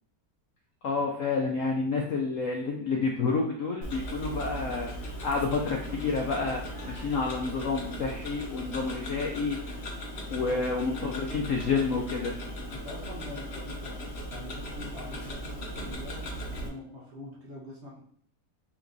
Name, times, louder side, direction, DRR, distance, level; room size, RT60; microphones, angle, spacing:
voice 1, 0.8-4.9 5.2-9.6 10.3-12.3, left 4 dB, 65° left, 0 dB, 0.8 m, -29 dB
Tick-tock, 3.8-16.7, equal, 45° left, 1.1 m, -38 dB
voice 2, 10.4-10.9 12.7-14.0 14.3-18.0, left 1 dB, 45° right, -3 dB, 1.1 m, -44 dB
4.6 x 3.0 x 3.9 m, 0.63 s
omnidirectional pair, 1.9 m